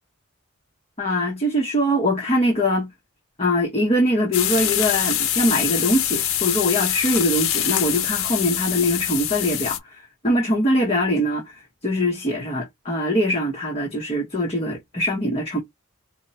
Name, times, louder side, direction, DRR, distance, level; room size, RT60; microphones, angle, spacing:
voice 1, 1.0-2.9 3.4-15.6, equal, 30° left, 0.9 m, -22 dB
sound 1, 4.3-9.8, left 11 dB, 70° left, 0.6 m, -24 dB
4.5 x 2.2 x 2.8 m
head